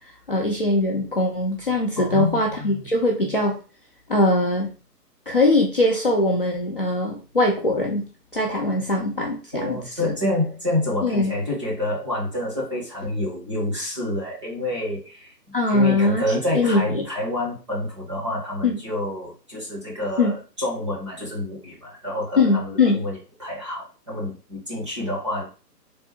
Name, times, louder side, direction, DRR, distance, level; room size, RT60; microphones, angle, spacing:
voice 1, 0.3-3.6 4.1-4.7 5.3-8.0 8.3-10.1 11.0-11.3 15.5-16.2 16.5-17.0 18.6-18.8 20.2-20.3 22.4-23.0, left 2 dB, 35° left, -2 dB, 0.5 m, -21 dB
voice 2, 2.0-2.9 9.5-15.3 15.7-25.5, left 1 dB, 20° right, -5 dB, 0.7 m, -28 dB
3.4 x 2.0 x 4.3 m, 0.34 s
hypercardioid pair, 170°, 49 cm